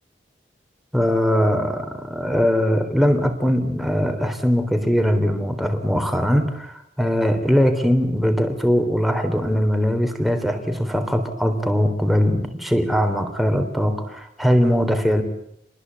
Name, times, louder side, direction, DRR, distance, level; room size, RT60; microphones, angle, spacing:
voice 1, 0.9-15.2, equal, ahead, 5 dB, 3.5 m, -21 dB
27.5 x 20.5 x 8.4 m, 0.73 s
head